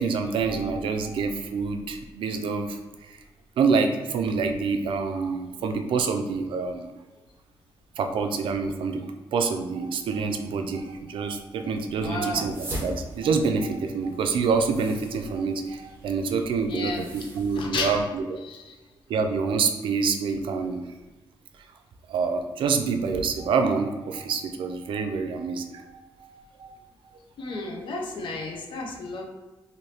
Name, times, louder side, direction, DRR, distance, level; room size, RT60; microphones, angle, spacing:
voice 1, 0.0-2.8 3.1-3.2 3.6-6.9 8.0-9.1 9.3-18.2 19.1-20.9 22.1-26.7 27.5-27.6, right 5 dB, 80° right, 6 dB, 0.3 m, -27 dB
voice 2, 11.9-12.5 16.7-17.0 17.6-18.0 18.4-18.6 27.4-29.3, left 2 dB, 70° left, 1 dB, 0.6 m, -32 dB
sound 1, 12.3-17.7, right 1 dB, 25° right, 0.8 m, -41 dB
3.2 x 2.6 x 2.8 m, 1.1 s
wide cardioid pair, 150°, 9 cm